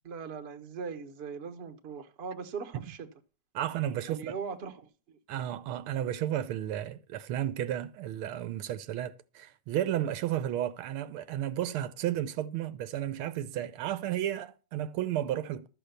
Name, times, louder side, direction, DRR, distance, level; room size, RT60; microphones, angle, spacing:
voice 1, 0.0-3.1 4.1-5.2, right 5 dB, 40° right, 1.0 m, -40 dB
voice 2, 3.5-4.3 5.3-15.7, right 11 dB, 85° right, 1.6 m, -33 dB
12.5 x 6.6 x 6.7 m
omnidirectional pair, 2.3 m